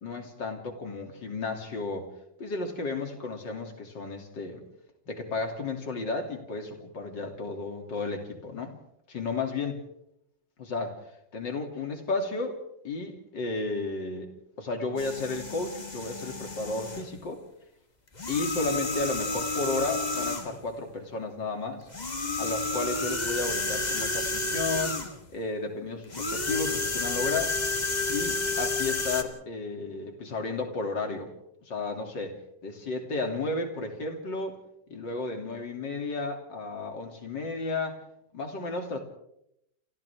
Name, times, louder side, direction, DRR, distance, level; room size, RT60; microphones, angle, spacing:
voice 1, 0.0-2.1 2.4-4.6 5.1-8.7 9.1-9.8 10.6-11.0 11.3-12.6 12.8-14.3 14.6-17.4 18.3-21.9 22.4-25.0 25.3-27.6 28.1-31.3 31.7-32.4 32.6-34.6 34.9-38.0 38.3-39.0, left 3 dB, 75° left, 3 dB, 3.5 m, -33 dB
sound 1, 15.0-17.1 18.1-20.6 21.9-25.2 26.1-29.2, left 3 dB, 25° left, 1.7 m, -31 dB
29.0 x 27.5 x 3.6 m, 0.78 s
omnidirectional pair, 2.0 m